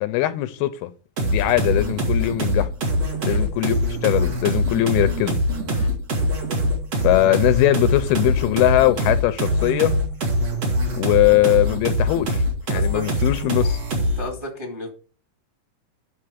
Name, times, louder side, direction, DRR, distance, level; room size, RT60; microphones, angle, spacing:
voice 1, 0.0-0.9 1.2-2.7 3.2-3.8 4.0-5.4 7.0-9.9 10.9-12.4 12.7-13.8, left 15 dB, 85° left, 2.5 m, -20 dB
sound 1, 1.2-14.3, equal, 40° right, 2.9 m, -23 dB
voice 2, 12.7-13.0 14.0-14.9, left 1 dB, 10° right, 1.3 m, -33 dB
9.6 x 6.0 x 5.0 m
omnidirectional pair, 4.6 m